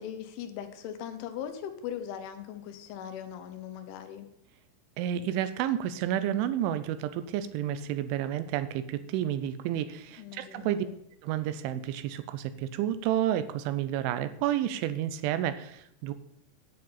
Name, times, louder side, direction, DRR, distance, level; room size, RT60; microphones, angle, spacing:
voice 1, 0.0-4.3 10.2-11.0, left 9 dB, 75° left, 9 dB, 3.3 m, -40 dB
voice 2, 5.0-10.9 11.2-16.1, right 11 dB, 80° right, 12 dB, 3.1 m, -30 dB
10.5 x 6.4 x 8.7 m, 0.75 s
omnidirectional pair, 5.8 m